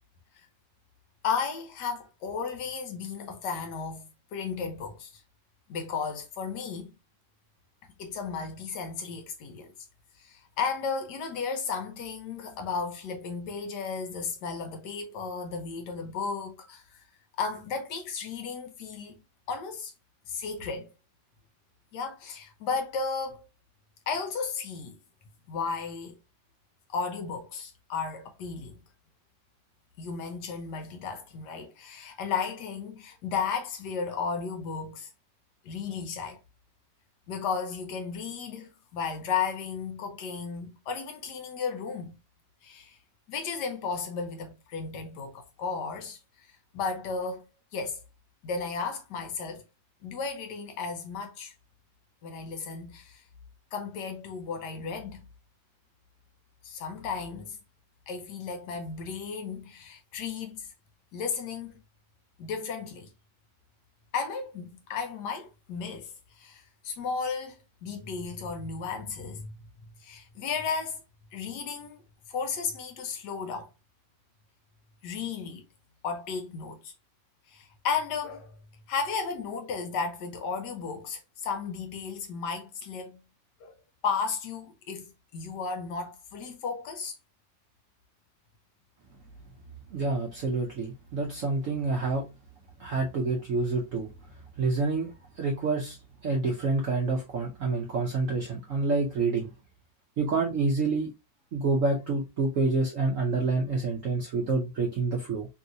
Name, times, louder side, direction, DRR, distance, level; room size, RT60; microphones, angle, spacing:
voice 1, 1.2-5.2 5.7-6.9 8.0-9.7 10.2-17.0 17.4-19.2 19.5-19.9 20.3-20.9 21.9-23.5 24.1-25.0 25.5-26.2 26.9-28.8 30.0-35.1 35.6-36.4 37.3-42.2 42.6-43.0 43.3-46.2 46.7-47.4 47.7-48.0 48.4-49.6 50.0-51.5 52.2-53.2 53.7-55.3 56.6-57.6 58.1-60.7 61.1-61.8 62.4-63.1 64.1-66.1 66.4-67.6 67.8-69.5 70.0-71.0 71.3-72.0 72.3-73.7 75.0-75.6 76.0-76.9 77.5-78.6 78.9-83.2 83.6-83.7 84.0-87.1, left 5 dB, 70° left, 1.1 m, -34 dB
voice 2, 89.9-92.3 92.8-94.1 94.6-96.0 96.2-99.5 100.2-101.1 101.5-105.5, right 3 dB, 75° right, 0.7 m, -28 dB
3.0 x 2.8 x 2.5 m
omnidirectional pair, 2.1 m